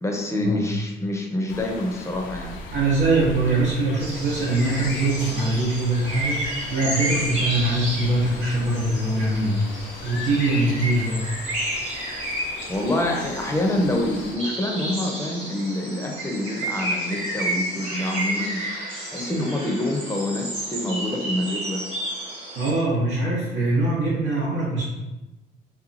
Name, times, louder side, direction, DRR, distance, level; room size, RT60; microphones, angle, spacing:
voice 1, 0.0-2.6 12.7-18.9 19.1-22.0, left 1 dB, 15° left, 0 dB, 0.5 m, -26 dB
sound 1, 1.5-14.4, left 4 dB, 75° left, 0.4 m, -38 dB
voice 2, 2.7-9.6 10.0-11.2 22.6-24.9, right 2 dB, 75° right, -7 dB, 0.8 m, -22 dB
sound 2, 4.0-22.7, right 1 dB, 30° right, 1.1 m, -31 dB
2.8 x 2.2 x 2.5 m, 1.0 s
cardioid pair, 90°, 20 cm